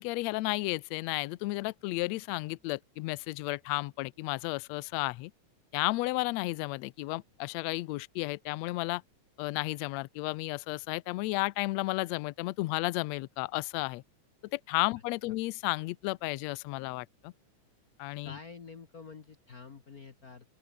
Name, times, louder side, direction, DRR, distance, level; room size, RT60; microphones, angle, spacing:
voice 1, 0.0-5.3 5.7-9.0 9.4-14.0 14.5-17.3 18.0-18.4, left 21 dB, 80° left, 1.7 m, -33 dB
voice 2, 18.2-20.5, left 4 dB, 40° left, 1.4 m, -48 dB
open air
omnidirectional pair, 3.4 m